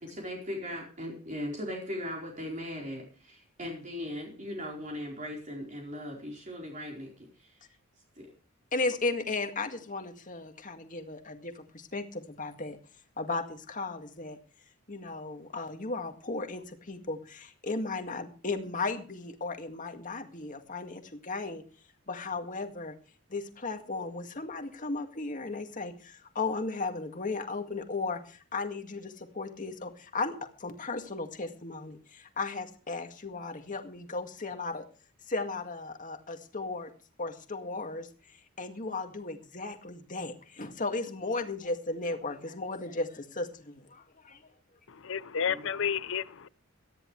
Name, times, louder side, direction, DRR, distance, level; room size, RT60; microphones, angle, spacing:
voice 1, 0.1-7.6 8.2-8.3 45.5-45.7, left 1 dB, 35° right, 4.4 m, -39 dB
voice 2, 8.7-12.8 13.2-14.4 14.9-21.6 22.1-22.9 23.3-34.8 35.3-36.9 37.2-38.1 38.6-44.5, left 3 dB, 40° left, 2.1 m, -35 dB
voice 3, 45.0-46.5, left 7 dB, 60° left, 0.7 m, -31 dB
18.0 x 13.5 x 3.3 m
head